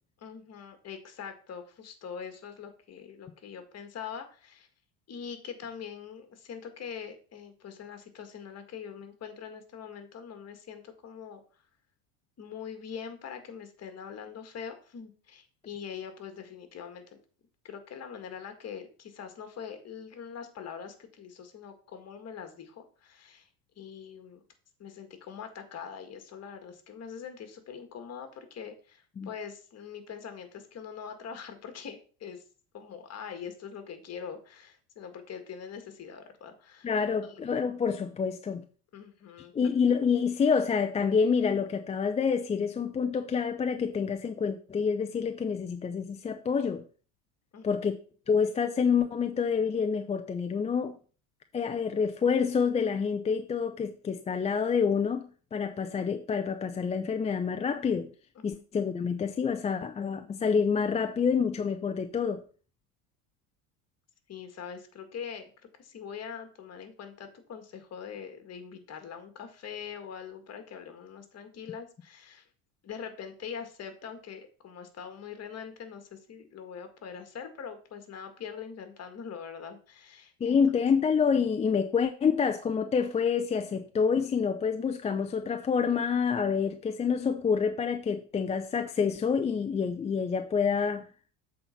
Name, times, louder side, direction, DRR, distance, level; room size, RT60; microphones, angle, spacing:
voice 1, 0.2-4.7 5.1-11.4 12.4-17.2 17.6-23.5 23.8-24.4 24.8-32.4 32.7-37.5 38.9-39.5 47.5-47.8 58.3-58.5 64.3-65.5 65.8-72.4 72.8-80.6, left 7 dB, 35° left, 1.8 m, -43 dB
voice 2, 36.8-38.6 39.5-46.8 47.6-47.9 48.3-51.0 51.5-58.1 58.4-62.4 80.4-91.1, left 6 dB, 15° left, 0.4 m, -27 dB
7.7 x 4.2 x 5.7 m
supercardioid pair, 105°, 43 cm